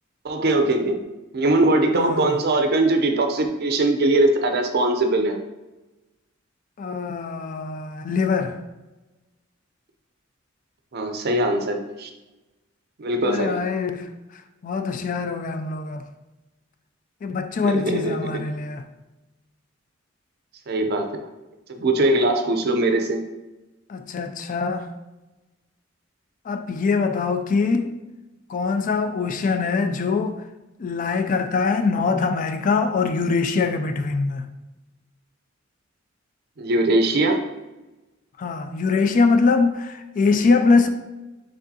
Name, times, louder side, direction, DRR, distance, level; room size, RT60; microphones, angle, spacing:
voice 1, 0.2-1.0 1.3-5.4 10.9-12.1 13.0-13.6 17.6-18.4 20.7-21.1 21.7-23.2 36.6-37.4, right 2 dB, 55° right, 0.5 m, -21 dB
voice 2, 1.9-2.3 6.8-8.6 13.2-14.1 14.6-16.1 17.2-18.8 23.9-24.9 26.5-27.9 28.5-30.4 30.8-34.5 38.4-40.9, left 4 dB, 40° left, 0.3 m, -23 dB
4.8 x 3.6 x 2.7 m
head